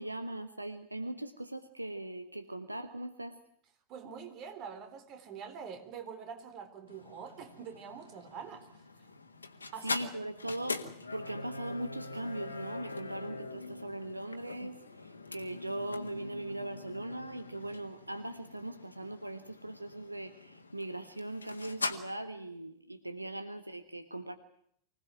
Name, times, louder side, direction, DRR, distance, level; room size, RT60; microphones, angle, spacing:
voice 1, 0.0-3.3 9.8-10.8 11.1-24.4, right 1 dB, 85° right, 10 dB, 1.3 m, -40 dB
voice 2, 3.9-8.8 9.7-10.1, right 6 dB, 40° right, 8 dB, 3.7 m, -45 dB
sound 1, 6.9-21.9, left 3 dB, 80° left, 1.8 m, -43 dB
25.0 x 18.0 x 9.2 m, 0.69 s
figure-of-eight pair, 90°, 0 cm